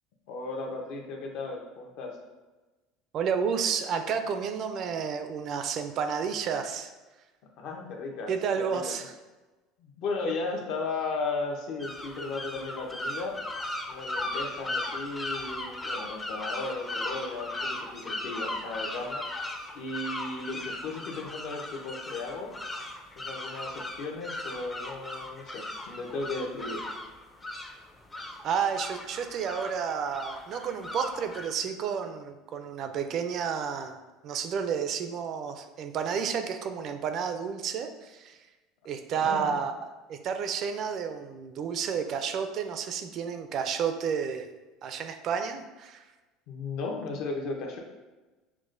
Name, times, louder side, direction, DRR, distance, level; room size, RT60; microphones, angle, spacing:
voice 1, 0.3-2.2 7.6-9.0 9.8-13.4 13.9-19.2 19.7-22.5 23.2-26.8 39.1-39.6 46.5-47.8, left 3 dB, 60° left, 1 dB, 0.7 m, -35 dB
voice 2, 3.1-6.9 8.3-9.1 28.4-34.0 34.2-38.4 38.9-39.7 40.1-44.5 44.8-46.0, right 7 dB, 50° right, 7 dB, 0.3 m, -31 dB
sound 1, 11.8-31.5, left 2 dB, 15° left, 0.4 m, -37 dB
5.8 x 2.1 x 2.5 m, 1.2 s
supercardioid pair, 120°, 0 cm